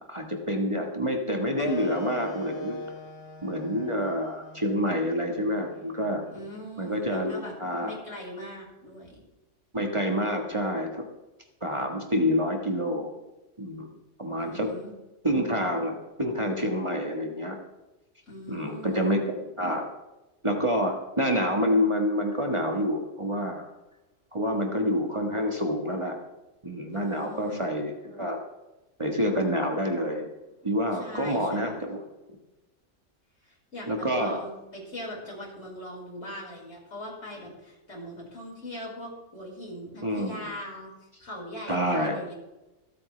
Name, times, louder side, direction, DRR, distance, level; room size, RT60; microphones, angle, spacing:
voice 1, 0.1-2.8 3.4-6.2 6.8-7.9 9.7-11.1 11.6-13.1 13.6-13.9 14.2-14.7 15.2-17.6 18.5-19.9 20.4-23.7 24.3-26.2 26.6-28.4 29.0-30.3 30.6-32.0 33.9-34.4 40.0-40.5 41.7-42.2, equal, 25° right, 2 dB, 1.6 m, -27 dB
sound 1, 1.6-6.7, left 2 dB, 55° left, 1.5 m, -40 dB
voice 2, 6.3-7.5 7.8-9.2 14.4-14.9 18.3-19.2 26.9-27.7 30.9-31.8 33.4-40.9 41.2-42.3, equal, 80° left, -3 dB, 5.4 m, -41 dB
26.0 x 9.0 x 3.4 m, 1.0 s
omnidirectional pair, 1.3 m